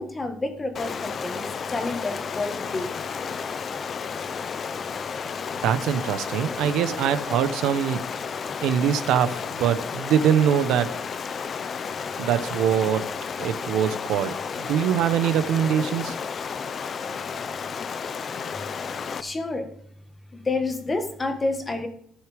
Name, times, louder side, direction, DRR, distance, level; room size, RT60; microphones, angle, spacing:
voice 1, 0.0-2.9 18.5-18.6 19.2-19.7 20.3-21.9, left 2 dB, 20° left, 6 dB, 1.6 m, -29 dB
Stream, 0.7-19.2, left 6 dB, 35° left, 0.6 m, -32 dB
voice 2, 5.6-8.0 8.6-10.9 12.2-13.1 13.4-16.1, right 9 dB, 85° right, 11 dB, 0.9 m, -23 dB
14.5 x 6.5 x 5.1 m, 0.64 s
cardioid pair, 160°, 0 cm